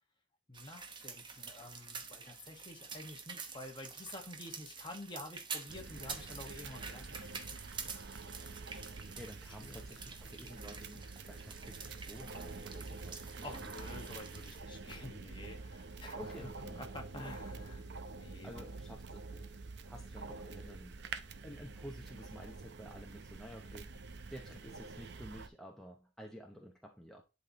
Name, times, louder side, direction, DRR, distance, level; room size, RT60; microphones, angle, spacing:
voice 1, 0.5-7.5 8.8-9.2 9.6-9.9 13.4-16.5 16.7-17.8 18.1-18.7, left 2 dB, 25° left, 1.4 m, -49 dB
sound 1, 0.5-14.6, right 5 dB, 25° right, 0.9 m, -48 dB
sound 2, 5.7-25.5, right 3 dB, 60° right, 0.7 m, -47 dB
voice 2, 9.2-13.3 16.1-16.8 18.4-19.5 19.9-21.1 21.4-27.2, equal, 5° left, 0.7 m, -51 dB
11.0 x 4.1 x 3.0 m
head